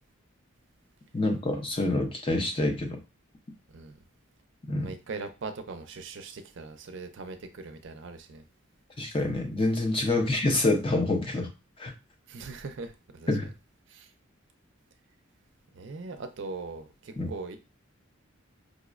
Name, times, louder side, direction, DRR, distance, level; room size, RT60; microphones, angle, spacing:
voice 1, 1.1-3.0 4.7-4.9 9.0-11.5 11.8-11.9 13.3-13.5 17.2-17.3, left 2 dB, 25° left, 0.5 m, -27 dB
voice 2, 4.8-8.4 10.1-10.2 12.3-13.4 13.9-14.1 15.7-17.6, right 3 dB, 60° right, 0.5 m, -40 dB
5.0 x 2.0 x 2.4 m
head